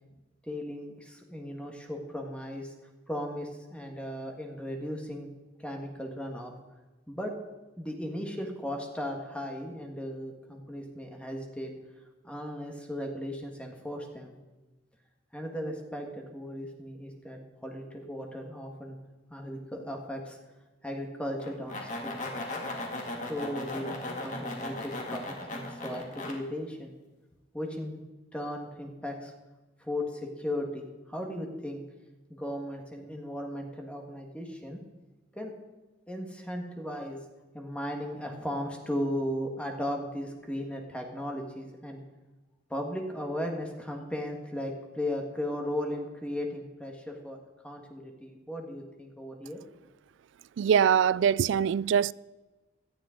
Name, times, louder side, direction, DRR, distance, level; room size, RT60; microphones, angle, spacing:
voice 1, 0.5-2.7 3.1-5.3 5.6-6.5 7.1-7.3 7.8-11.7 12.2-14.3 15.3-19.0 19.3-20.4 20.8-22.3 23.3-26.9 27.5-28.0 28.3-29.3 29.8-31.8 32.3-34.8 35.3-35.5 36.1-37.2 37.5-42.0 42.7-47.4 47.6-49.6, left 1 dB, 5° left, 1.6 m, -36 dB
sound 1, 21.4-26.3, left 2 dB, 40° left, 2.3 m, -37 dB
voice 2, 50.6-52.1, right 8 dB, 80° right, 0.3 m, -23 dB
17.5 x 12.5 x 3.8 m
head